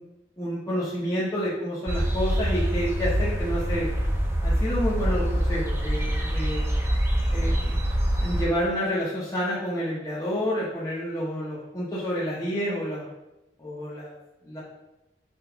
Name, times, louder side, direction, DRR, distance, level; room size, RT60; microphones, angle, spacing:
voice 1, 0.4-3.9 4.4-6.7 7.3-7.7 8.2-13.0 13.6-14.1 14.4-14.6, equal, 20° left, -8 dB, 1.1 m, -29 dB
sound 1, 1.9-8.4, equal, 15° right, 0.8 m, -25 dB
5.4 x 4.9 x 3.5 m, 0.95 s
head